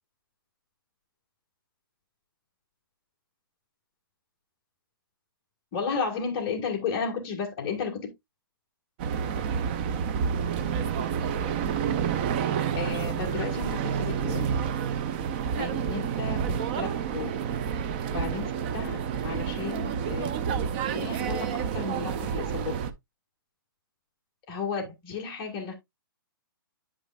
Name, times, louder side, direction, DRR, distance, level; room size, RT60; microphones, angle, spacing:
voice 1, 5.7-8.1 12.7-14.4 15.6-16.9 17.1-17.3 18.1-20.3 20.9-22.7 24.5-25.7, left 5 dB, 25° left, 1.9 m, -33 dB
sound 1, 9.0-22.9, right 7 dB, 25° right, 0.5 m, -29 dB
9.8 x 5.2 x 2.4 m
hypercardioid pair, 165°, 12 cm